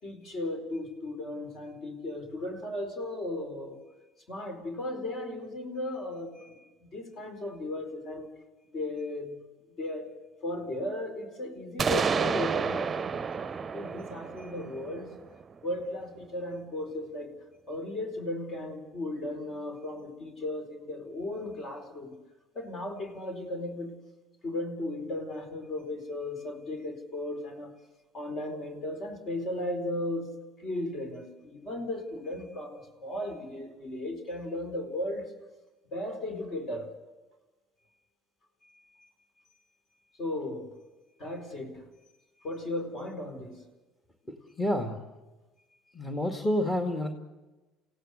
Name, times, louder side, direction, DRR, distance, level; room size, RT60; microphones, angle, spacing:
voice 1, 0.0-3.8 4.3-8.3 8.7-9.4 9.8-10.1 10.4-15.1 15.6-17.3 17.7-22.2 22.5-24.0 24.4-27.7 28.1-35.3 35.9-36.9 38.6-39.1 40.2-40.7 41.2-41.9 42.4-43.6, left 1 dB, 50° left, 4.5 m, -36 dB
sound 1, 11.8-15.6, right 6 dB, 30° right, 0.6 m, -30 dB
voice 2, 44.3-45.0 45.9-47.1, left 1 dB, 20° left, 2.1 m, -29 dB
28.5 x 16.5 x 6.7 m
hypercardioid pair, 75°, 0 cm